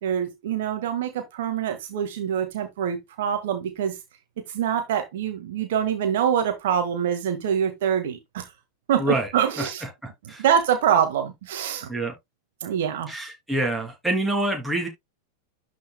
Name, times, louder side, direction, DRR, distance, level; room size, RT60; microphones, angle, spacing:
voice 1, 0.0-4.0 4.5-8.5 8.9-9.8 10.4-11.9 12.6-13.1, right 9 dB, 55° right, 1.7 m, -25 dB
voice 2, 9.0-9.3 9.6-10.4 11.9-12.1 13.1-14.9, right 2 dB, 5° right, 3.1 m, -27 dB
12.0 x 5.0 x 2.2 m
figure-of-eight pair, 90°, 0 cm